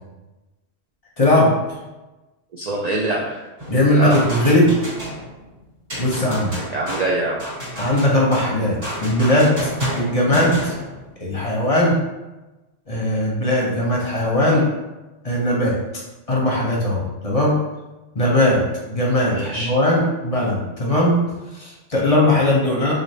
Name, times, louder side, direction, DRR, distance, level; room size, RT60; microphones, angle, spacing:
voice 1, 1.2-1.5 3.7-4.9 6.0-6.5 7.8-9.7 9.9-10.7 11.2-12.0 12.9-14.6 15.2-15.7 16.3-17.6 18.1-18.6 18.9-21.2 21.5-22.9, left 1 dB, 35° left, -3 dB, 0.7 m, -19 dB
voice 2, 2.5-3.5 4.0-4.2 6.7-7.4 14.4-14.6 19.3-19.7, right 2 dB, 70° right, -2 dB, 0.4 m, -24 dB
sound 1, 3.6-5.5 5.9-11.1, equal, 40° right, 1.7 m, -30 dB
3.9 x 3.2 x 2.7 m, 1.1 s
omnidirectional pair, 1.2 m